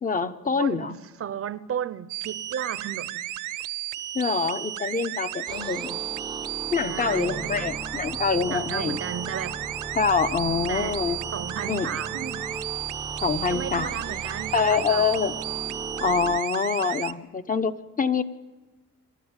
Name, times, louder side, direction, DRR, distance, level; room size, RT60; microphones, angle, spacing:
voice 1, 0.0-1.0 4.1-6.0 6.7-9.0 9.9-11.2 11.7-11.9 13.2-14.2 14.5-15.3 16.0-18.2, left 5 dB, 25° left, 1.0 m, -25 dB
voice 2, 0.6-3.3 6.9-7.7 8.5-9.7 10.7-11.0 11.3-12.6 13.5-15.1, right 8 dB, 50° right, 0.8 m, -34 dB
sound 1, 2.1-17.1, right 14 dB, 85° right, 0.7 m, -34 dB
sound 2, 5.5-16.4, right 3 dB, 15° right, 0.6 m, -37 dB
27.0 x 12.5 x 9.0 m
cardioid pair, 90°, 30 cm